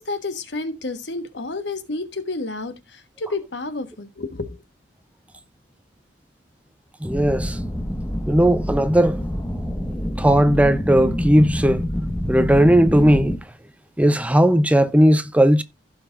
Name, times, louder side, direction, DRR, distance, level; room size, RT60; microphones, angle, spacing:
voice 1, 0.0-4.6, left 2 dB, 70° left, 1.3 m, -30 dB
sound 1, 7.0-13.4, equal, 10° left, 1.4 m, -26 dB
voice 2, 7.0-7.6 8.3-9.2 10.2-11.8 12.3-13.4 14.0-15.6, equal, 10° right, 0.6 m, -17 dB
16.0 x 5.8 x 2.5 m
head